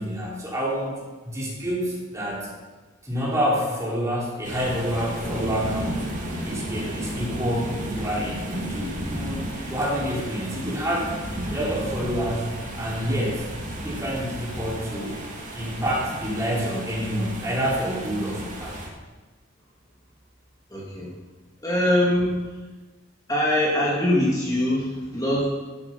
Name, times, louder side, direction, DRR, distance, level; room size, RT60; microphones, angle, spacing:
voice 1, 0.0-2.5 3.0-11.1 11.5-13.5 13.8-15.2 15.5-18.8, equal, 15° right, -5 dB, 3.3 m, -28 dB
sound 1, 4.4-18.9, right 1 dB, 40° right, 2.3 m, -33 dB
voice 2, 20.7-21.1 21.6-22.4 23.3-25.5, left 1 dB, 20° left, -5 dB, 2.1 m, -22 dB
12.5 x 8.1 x 5.3 m, 1.3 s
head